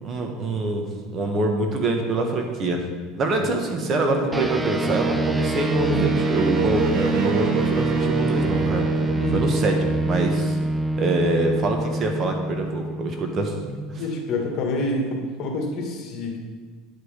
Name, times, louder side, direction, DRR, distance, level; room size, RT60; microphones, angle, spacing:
voice 1, 0.0-2.8 3.2-8.9 9.3-9.7 10.0-10.6 11.0-13.9, right 2 dB, 40° right, 3 dB, 1.3 m, -25 dB
sound 1, 3.8-11.2, right 5 dB, 55° right, 1.3 m, -29 dB
sound 2, 4.3-14.1, right 2 dB, 10° right, 0.5 m, -26 dB
voice 2, 14.0-16.4, left 2 dB, 50° left, 1 dB, 1.9 m, -27 dB
10.0 x 5.1 x 5.1 m, 1.5 s
supercardioid pair, 110°, 0 cm